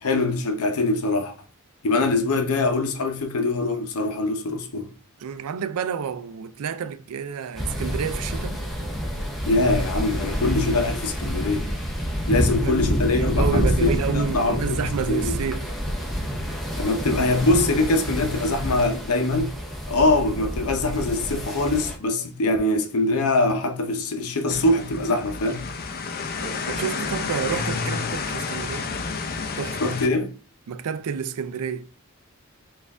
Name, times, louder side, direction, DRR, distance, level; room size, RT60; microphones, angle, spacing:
voice 1, 0.0-1.3 1.8-4.9 9.5-11.7 12.3-15.3 16.8-19.5 19.9-25.6 29.8-30.4, left 2 dB, 80° left, 0.7 m, -23 dB
voice 2, 5.2-8.6 12.3-12.7 13.1-15.7 26.4-28.9 29.6-29.8 30.7-31.9, right 7 dB, 85° right, 0.4 m, -29 dB
sound 1, 7.6-22.0, equal, ahead, 0.6 m, -28 dB
sound 2, 24.5-30.1, left 4 dB, 40° left, 0.5 m, -30 dB
4.1 x 2.5 x 3.4 m
head